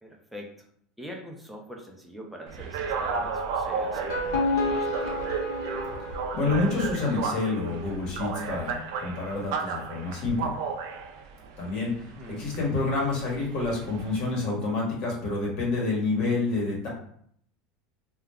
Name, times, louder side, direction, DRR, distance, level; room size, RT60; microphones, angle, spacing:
voice 1, 0.0-0.5 1.0-5.4 12.0-12.6, equal, 5° right, 1 dB, 0.5 m, -44 dB
sound 1, 2.5-14.3, right 5 dB, 75° right, 0.4 m, -34 dB
sound 2, 3.9-7.0, left 2 dB, 80° left, 0.8 m, -30 dB
voice 2, 6.3-10.5 11.6-16.9, left 3 dB, 50° left, -2 dB, 1.1 m, -28 dB
2.3 x 2.1 x 3.4 m, 0.66 s
supercardioid pair, 135°, 2 cm